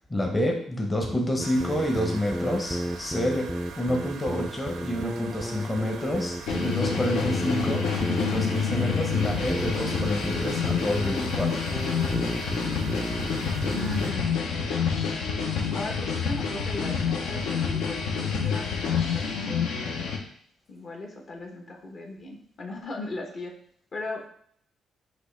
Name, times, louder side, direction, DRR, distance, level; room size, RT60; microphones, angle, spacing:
voice 1, 0.1-3.5 3.8-7.9 8.2-11.6, equal, 20° left, 1 dB, 0.7 m, -28 dB
sound 1, 1.4-14.1, equal, ahead, 0.3 m, -33 dB
sound 2, 1.4-14.1, right 6 dB, 80° right, 0.5 m, -42 dB
sound 3, 6.5-20.2, left 6 dB, 85° left, 0.7 m, -28 dB
voice 2, 13.7-14.4 15.7-19.7 20.7-23.5 23.9-24.3, left 2 dB, 50° left, 1 dB, 0.9 m, -38 dB
6.0 x 2.6 x 3.2 m, 0.63 s
cardioid pair, 90°, 0 cm